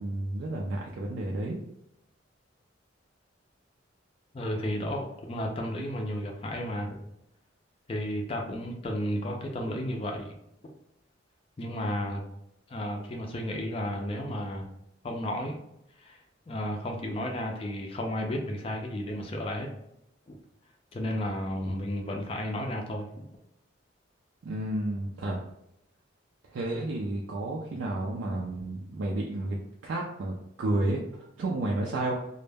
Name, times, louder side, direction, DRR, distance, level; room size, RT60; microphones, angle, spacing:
voice 1, 0.0-1.6 24.4-25.4 26.5-29.6 29.8-32.1, right 1 dB, 75° right, -2 dB, 0.4 m, -31 dB
voice 2, 4.3-7.0 7.9-10.3 11.6-12.2 12.7-14.7 15.0-15.6 16.0-16.2 16.5-19.7 20.3-20.4 20.9-23.3, left 1 dB, 30° left, 1 dB, 0.3 m, -33 dB
2.1 x 2.0 x 3.2 m, 0.81 s
head